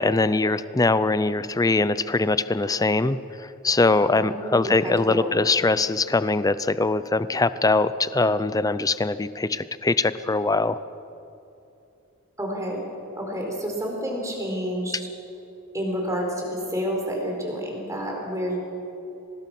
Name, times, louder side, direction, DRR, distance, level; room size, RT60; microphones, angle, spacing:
voice 1, 0.0-10.8, left 3 dB, 15° left, 15 dB, 0.5 m, -22 dB
voice 2, 4.0-5.3 12.4-12.8 13.2-15.0 15.7-18.6, equal, 15° right, 0 dB, 4.5 m, -29 dB
24.5 x 19.5 x 6.1 m, 2.7 s
head